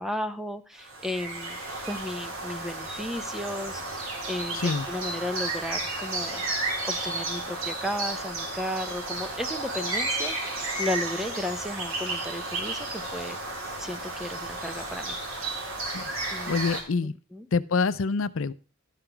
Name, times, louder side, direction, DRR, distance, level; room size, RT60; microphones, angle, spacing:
voice 1, 0.0-1.6 1.8-6.4 6.8-13.4 13.8-15.2 16.3-16.6 17.0-17.5, left 1 dB, ahead, 9 dB, 0.7 m, -34 dB
sound 1, 0.8-16.8, right 2 dB, 85° right, 3.7 m, -33 dB
voice 2, 16.5-17.1 17.5-18.5, left 4 dB, 70° left, 14 dB, 0.5 m, -26 dB
12.5 x 5.9 x 4.5 m, 0.37 s
head